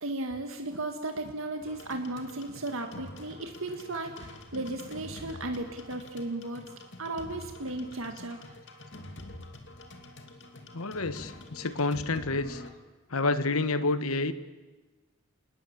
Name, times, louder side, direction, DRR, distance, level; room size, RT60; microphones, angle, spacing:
voice 1, 0.0-6.7 7.0-8.4, right 2 dB, 70° right, 5 dB, 1.9 m, -35 dB
sound 1, 1.6-12.7, left 2 dB, 55° left, 2.7 m, -46 dB
voice 2, 10.7-12.6 13.1-14.3, left 3 dB, 85° left, 12 dB, 1.3 m, -29 dB
28.0 x 19.5 x 8.9 m, 1.2 s
head